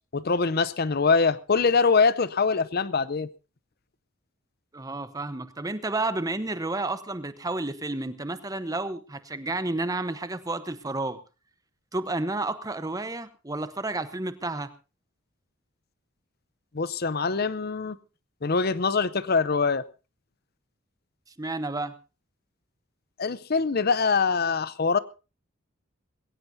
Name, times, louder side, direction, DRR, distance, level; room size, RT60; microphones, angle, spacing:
voice 1, 0.1-3.3 16.7-18.0 18.4-19.8 23.2-25.0, left 4 dB, 50° left, 0.7 m, -23 dB
voice 2, 4.7-11.2 11.9-14.7 21.4-21.9, right 2 dB, 15° right, 1.0 m, -31 dB
21.0 x 17.0 x 2.7 m
head